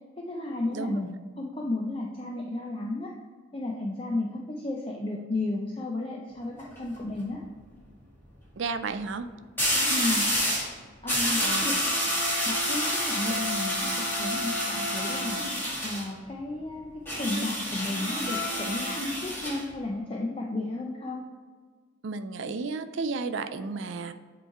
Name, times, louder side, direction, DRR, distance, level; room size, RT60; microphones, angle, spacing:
voice 1, 0.2-1.1 1.4-3.1 3.5-7.4 9.9-10.3 11.0-11.8 12.5-13.9 14.2-15.4 15.8-16.9 17.2-21.2, left 2 dB, 25° left, -1 dB, 0.5 m, -33 dB
sound 1, 6.4-6.8 9.6-10.7 11.1-16.1 17.1-19.6, equal, 10° left, 1.8 m, -28 dB
voice 2, 8.6-9.3 11.4-11.8 22.0-24.1, right 4 dB, 65° right, 10 dB, 0.4 m, -33 dB
7.8 x 3.1 x 4.5 m, 1.6 s
head